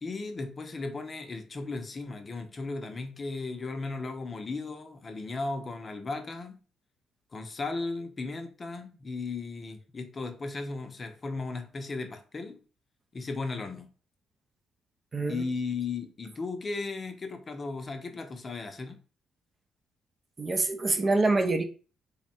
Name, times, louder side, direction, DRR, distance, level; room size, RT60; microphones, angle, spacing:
voice 1, 0.0-6.6 7.3-12.6 13.1-13.9 15.3-19.0, left 3 dB, 35° left, 0.6 m, -36 dB
voice 2, 15.1-15.4 20.4-21.6, right 3 dB, 35° right, 0.6 m, -25 dB
3.5 x 2.2 x 4.1 m
cardioid pair, 90°, 0 cm